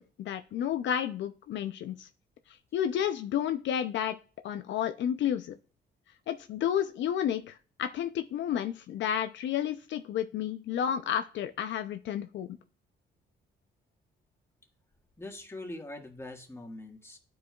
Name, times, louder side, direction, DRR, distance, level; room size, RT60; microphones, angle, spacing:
voice 1, 0.0-2.1 2.5-4.2 4.4-5.6 6.3-12.6, left 9 dB, 70° left, 8 dB, 0.5 m, -31 dB
voice 2, 15.2-17.2, left 2 dB, 15° left, 3 dB, 1.6 m, -42 dB
11.0 x 4.8 x 2.3 m, 0.38 s
cardioid pair, 90°, 20 cm